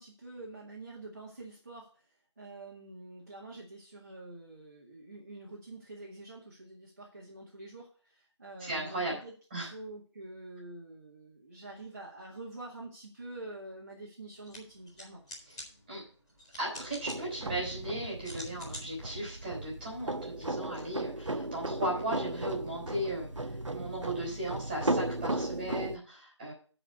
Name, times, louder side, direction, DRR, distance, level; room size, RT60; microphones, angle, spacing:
voice 1, 0.0-15.2, right 2 dB, 35° right, -4 dB, 1.9 m, -47 dB
voice 2, 8.6-9.2 9.5-9.7 15.5-15.6 15.9-16.0 16.6-26.5, right 1 dB, 10° right, -5 dB, 4.0 m, -36 dB
sound 1, 14.3-20.4, left 1 dB, 10° left, 2.4 m, -50 dB
sound 2, 16.7-26.0, right 2 dB, 85° right, 1.1 m, -36 dB
10.0 x 5.0 x 7.9 m, 0.42 s
figure-of-eight pair, 175°, 15 cm